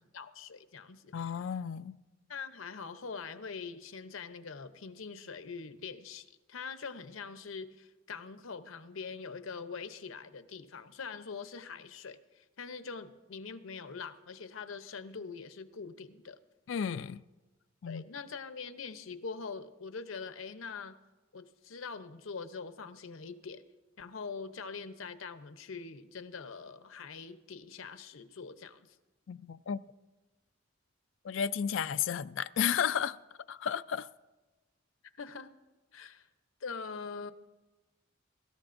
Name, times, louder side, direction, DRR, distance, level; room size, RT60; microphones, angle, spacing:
voice 1, 0.1-1.3 2.3-16.4 17.9-21.0 21.3-23.6 24.0-29.0 35.2-35.5 35.9-36.3 36.6-37.3, left 5 dB, 85° left, 0.8 m, -43 dB
voice 2, 1.1-2.0 16.7-17.2 17.8-18.0 29.3-29.8 31.2-33.2 33.5-34.1, left 8 dB, 65° left, 0.4 m, -33 dB
23.0 x 13.0 x 2.6 m
head